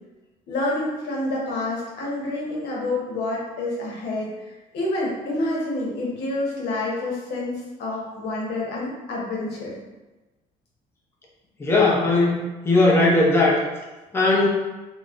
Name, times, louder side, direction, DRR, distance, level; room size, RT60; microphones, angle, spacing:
voice 1, 0.5-9.7, left 2 dB, 80° left, -4 dB, 0.9 m, -28 dB
voice 2, 11.6-13.6 14.1-14.5, left 2 dB, 15° left, -4 dB, 0.6 m, -18 dB
3.9 x 2.1 x 2.4 m, 1.1 s
cardioid pair, 110°, 17 cm